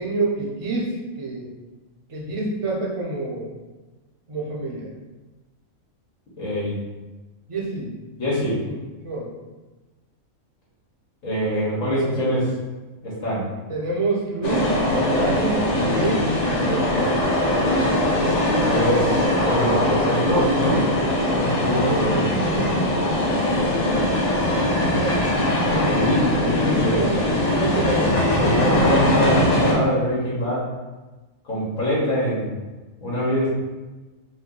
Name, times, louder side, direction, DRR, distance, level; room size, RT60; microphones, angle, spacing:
voice 1, 0.0-1.5 2.1-3.5 4.3-4.9 7.5-8.0 8.3-8.8 9.0-9.3 13.7-14.8 15.1-16.3 16.6-16.9 21.6-25.2 26.4-28.1, right 2 dB, 30° right, -2 dB, 0.6 m, -28 dB
voice 2, 6.4-6.8 8.2-8.6 11.2-12.5 13.0-13.5 18.7-20.9 21.3-22.2 25.6-27.0 28.4-30.6 31.4-32.5 33.0-33.5, equal, 80° left, -7 dB, 1.7 m, -24 dB
sound 1, 14.4-29.7, left 1 dB, 40° left, 0.6 m, -21 dB
4.0 x 2.7 x 3.8 m, 1.2 s
omnidirectional pair, 1.4 m